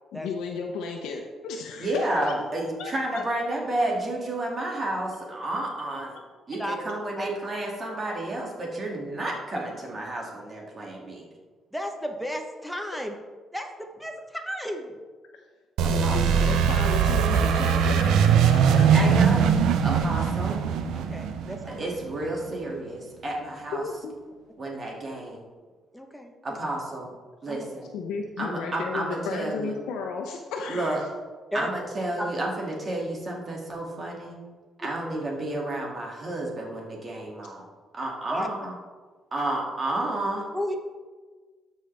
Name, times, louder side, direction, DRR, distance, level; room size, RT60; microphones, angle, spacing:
voice 1, 0.1-2.3 2.8-3.2 15.9-19.2 23.7-24.1 27.9-31.0, left 5 dB, 90° left, 2 dB, 0.8 m, -34 dB
voice 2, 1.8-6.2 6.5-11.3 15.8-16.4 18.7-19.4 19.8-20.6 21.8-23.8 24.6-25.4 26.4-27.1 27.4-27.9 28.4-29.8 30.7-31.0 31.5-34.4 34.8-37.6 37.9-38.7 39.3-40.4, right 1 dB, 40° right, -2 dB, 2.4 m, -31 dB
voice 3, 11.7-13.1 13.5-13.7 14.0-15.0 20.9-21.9 25.9-26.6 27.5-27.7 31.5-31.7 32.2-32.3 38.3-38.5 40.5-40.8, equal, ahead, 3 dB, 1.1 m, -33 dB
sound 1, 15.8-22.4, right 7 dB, 85° right, 0.5 m, -21 dB
13.0 x 5.5 x 3.4 m, 1.4 s
cardioid pair, 90°, 0 cm